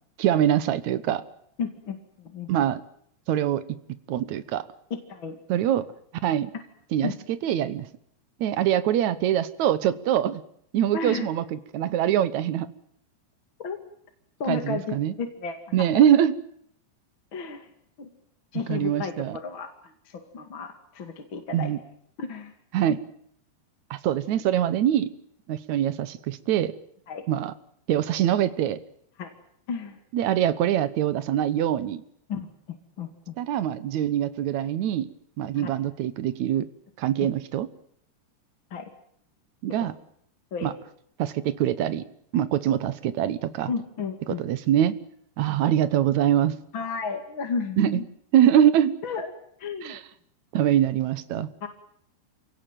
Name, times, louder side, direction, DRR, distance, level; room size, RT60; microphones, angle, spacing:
voice 1, 0.2-1.2 2.5-2.8 3.3-3.6 4.1-4.6 5.5-5.9 6.2-6.5 6.9-7.9 8.4-10.4 10.7-12.7 14.5-15.1 15.7-16.4 18.7-19.4 21.5-21.8 22.7-23.0 23.9-25.1 25.5-26.7 27.3-27.5 27.9-28.8 30.1-32.0 33.4-35.1 35.4-36.7 37.0-37.7 39.6-39.9 40.6-40.7 41.2-42.0 42.3-43.7 44.3-45.0 45.4-46.6 47.8-48.0 48.3-49.0 49.8-50.0 50.5-51.5, right 11 dB, 80° right, 14 dB, 1.6 m, -23 dB
voice 2, 1.6-2.0 2.3-2.5 5.1-5.4 7.0-7.1 10.9-11.3 13.6-13.8 14.4-15.6 15.9-16.0 17.3-17.7 18.0-18.1 18.5-19.7 20.1-21.7 22.2-22.5 27.1-27.2 29.2-29.3 29.7-30.0 32.3-32.5 33.0-33.3 35.5-35.7 38.7-38.9 40.5-40.7 43.7-44.4 46.7-48.0 49.0-49.3 49.6-50.0 51.6-51.7, left 5 dB, 35° left, 5 dB, 2.2 m, -32 dB
28.5 x 18.0 x 9.1 m, 0.69 s
omnidirectional pair, 5.0 m